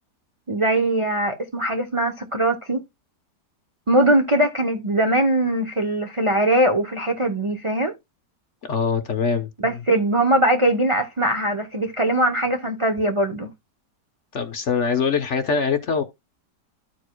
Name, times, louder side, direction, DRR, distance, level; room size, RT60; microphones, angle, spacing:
voice 1, 0.5-2.8 3.9-7.9 9.6-13.5, right 1 dB, 40° right, 0.4 m, -21 dB
voice 2, 8.6-9.5 14.3-16.0, left 5 dB, 50° left, 1.0 m, -23 dB
14.0 x 4.7 x 2.2 m
omnidirectional pair, 1.8 m